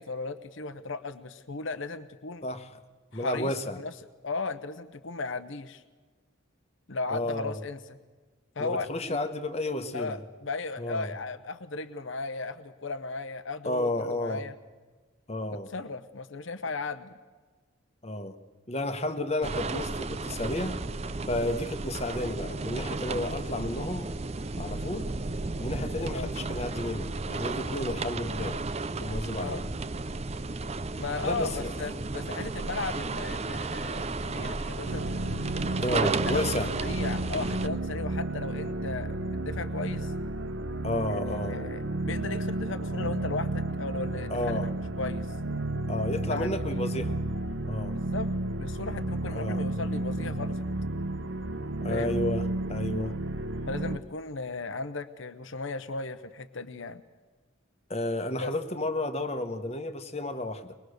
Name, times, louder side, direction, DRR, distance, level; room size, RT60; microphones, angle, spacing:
voice 1, 0.0-2.5 3.1-3.9 4.2-5.8 6.9-7.8 8.6-9.2 9.9-14.5 15.5-17.1 21.2-21.3 26.1-26.3 27.7-27.9 29.3-29.6 31.0-35.0 36.2-36.5 36.8-40.1 41.1-44.7 45.0-45.4 46.3-46.9 47.9-48.3 48.6-50.7 51.9-52.2 53.7-57.0 58.4-58.5, left 3 dB, 65° left, 10 dB, 0.9 m, -36 dB
voice 2, 2.4-2.8 3.1-3.8 7.1-7.6 8.6-10.2 10.8-11.1 13.6-14.4 15.3-15.7 18.0-18.4 18.7-20.8 21.3-24.1 24.6-25.1 25.6-28.6 29.0-29.6 31.2-31.7 35.8-36.7 40.8-41.6 44.3-44.7 45.9-47.2 47.7-48.0 49.3-49.6 51.8-53.1 57.9-60.7, left 1 dB, 30° left, 8 dB, 1.2 m, -32 dB
sound 1, 19.4-37.7, right 3 dB, 30° right, 0.6 m, -33 dB
sound 2, 34.9-54.0, right 1 dB, 65° right, 0.9 m, -32 dB
23.5 x 21.0 x 6.6 m, 1.4 s
head